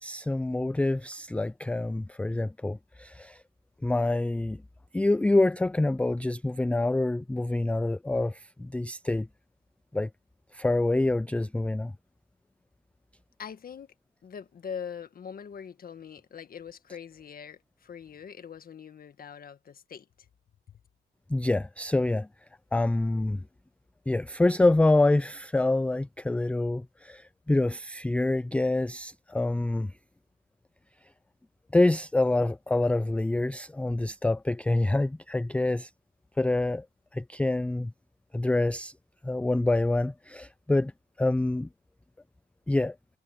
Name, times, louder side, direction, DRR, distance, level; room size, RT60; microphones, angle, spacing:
voice 1, 0.0-3.4 3.8-4.6 4.9-9.3 9.9-10.1 10.5-11.9 21.3-22.3 22.7-23.4 24.1-29.9 31.7-35.9 36.4-36.9 37.1-37.9 38.3-38.9 39.2-40.9 41.2-41.7 42.7-42.9, left 2 dB, 5° left, 0.4 m, -26 dB
voice 2, 13.4-13.9 14.2-20.3, left 7 dB, 45° left, 1.6 m, -42 dB
cardioid pair, 90°, 20 cm